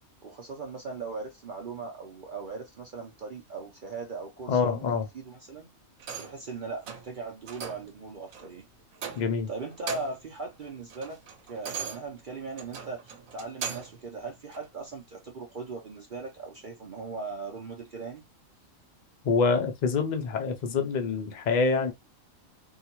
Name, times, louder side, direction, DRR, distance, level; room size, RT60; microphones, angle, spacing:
voice 1, 0.2-5.7 6.2-8.6 9.5-11.2 11.5-18.2, right 4 dB, 50° right, 0.6 m, -39 dB
voice 2, 4.5-5.1 9.2-9.5 19.2-21.9, left 4 dB, 50° left, 0.5 m, -26 dB
sound 1, 6.0-6.5 6.8-7.1 7.5-7.9 8.3-8.5 8.9-9.4 9.7-10.3 10.7-14.0 14.5-14.7, right 6 dB, 85° right, 1.1 m, -39 dB
3.5 x 2.2 x 2.9 m
omnidirectional pair, 1.4 m